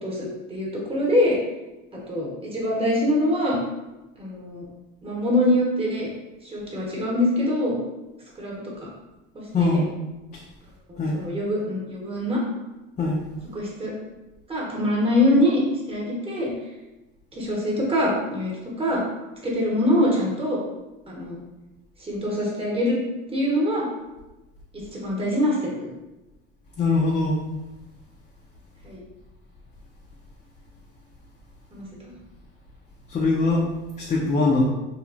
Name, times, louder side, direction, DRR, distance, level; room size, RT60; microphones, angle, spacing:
voice 1, 0.0-1.3 2.1-3.6 4.2-4.6 5.0-6.1 6.4-7.8 8.4-8.9 9.6-9.8 10.9-12.4 13.5-13.9 14.5-15.6 15.9-16.5 17.3-18.5 18.8-19.0 19.4-20.6 21.1-21.4 22.0-23.0 23.3-23.9 24.9-25.7 28.8-29.0 31.7-32.1, left 1 dB, 20° right, -4 dB, 1.0 m, -24 dB
voice 2, 9.5-9.9 11.0-11.2 13.0-13.2 26.8-27.4 33.1-33.7 34.0-34.7, left 3 dB, 25° left, -3 dB, 0.4 m, -21 dB
3.1 x 2.3 x 2.4 m, 1.0 s
supercardioid pair, 100°, 29 cm